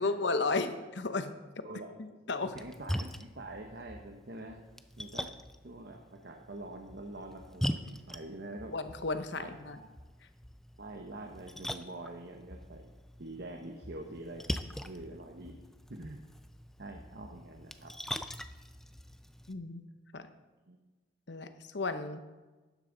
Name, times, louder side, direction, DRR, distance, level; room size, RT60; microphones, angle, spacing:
voice 1, 0.0-1.3 2.0-2.6 8.7-9.8 19.5-19.8 20.1-20.3 21.3-22.3, left 3 dB, 60° left, 10 dB, 0.8 m, -34 dB
Splash splatter, 2.4-19.5, equal, ahead, 0.3 m, -42 dB
voice 2, 2.5-4.6 5.0-5.3 5.6-8.7 9.3-9.9 10.8-12.9 13.2-14.4 14.8-15.6 15.9-16.2 16.8-17.9 20.7-20.8, right 2 dB, 55° right, 3 dB, 0.9 m, -45 dB
12.5 x 10.5 x 3.9 m, 1.2 s
head